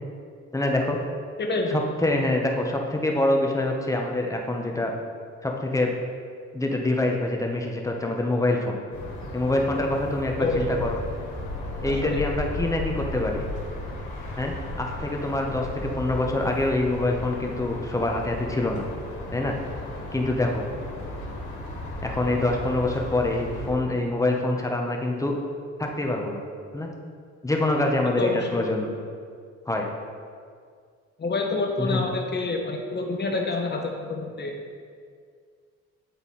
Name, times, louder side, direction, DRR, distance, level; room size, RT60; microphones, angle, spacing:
voice 1, 0.5-1.0 1.7-4.9 5.4-5.9 6.5-8.8 9.3-11.0 11.8-13.4 14.4-18.8 19.3-19.5 20.1-20.6 22.0-25.3 25.8-26.4 26.7-26.9 27.4-28.9 29.7-29.9 31.8-32.0, left 2 dB, 10° left, 1 dB, 0.9 m, -25 dB
voice 2, 1.4-1.8 10.4-10.6 11.8-12.2 28.2-28.6 31.2-34.6, left 3 dB, 35° left, 2 dB, 1.0 m, -27 dB
sound 1, 8.9-23.7, left 1 dB, 85° left, 1.6 m, -35 dB
9.2 x 3.4 x 4.2 m, 2.1 s
cardioid pair, 90°, 30 cm